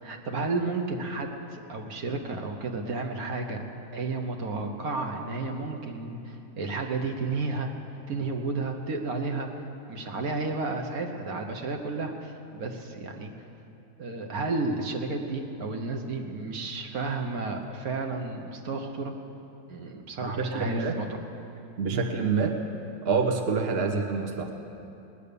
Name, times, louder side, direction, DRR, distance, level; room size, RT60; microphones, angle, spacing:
voice 1, 0.0-3.6 3.9-7.7 8.1-9.5 9.9-13.3 14.0-19.1 19.7-21.2 21.9-22.0, right 3 dB, 65° right, 3 dB, 1.5 m, -32 dB
voice 2, 20.3-21.0 21.8-22.5 23.0-24.5, right 4 dB, 40° right, 3 dB, 1.2 m, -27 dB
19.5 x 10.0 x 6.9 m, 2.8 s
omnidirectional pair, 1.7 m